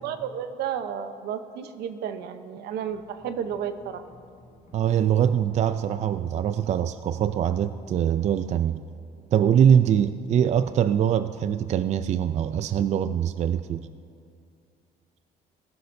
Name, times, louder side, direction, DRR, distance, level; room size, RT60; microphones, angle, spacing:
voice 1, 0.0-4.0, right 8 dB, 75° right, 9 dB, 0.8 m, -32 dB
sound 1, 2.9-8.6, left 3 dB, 45° left, 1.5 m, -53 dB
voice 2, 4.7-8.8 9.3-13.9, right 9 dB, 40° right, 12 dB, 0.4 m, -23 dB
19.5 x 11.5 x 2.7 m, 2.3 s
cardioid pair, 110°, 17 cm